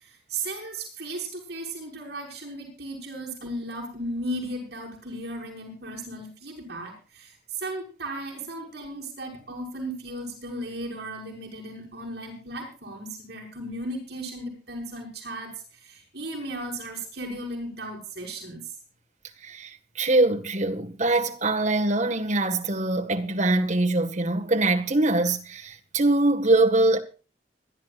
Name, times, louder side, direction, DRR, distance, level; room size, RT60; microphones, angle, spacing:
voice 1, 0.3-18.6, right 1 dB, 65° right, 6.3 m, -36 dB
voice 2, 19.4-27.0, right 2 dB, 45° right, 1.8 m, -23 dB
25.5 x 12.0 x 2.5 m
head